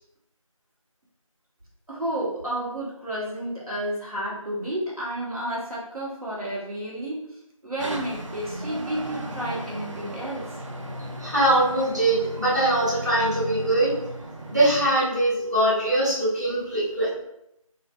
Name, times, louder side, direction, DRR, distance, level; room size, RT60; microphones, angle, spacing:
voice 1, 1.9-7.2 7.6-10.5, right 1 dB, 90° right, -6 dB, 1.2 m, -31 dB
sound 1, 7.8-14.9, right 1 dB, 60° right, 0.4 m, -36 dB
voice 2, 11.2-13.9 14.5-17.1, right 1 dB, 30° right, -8 dB, 0.9 m, -22 dB
2.5 x 2.4 x 2.4 m, 0.81 s
figure-of-eight pair, 175°, 18 cm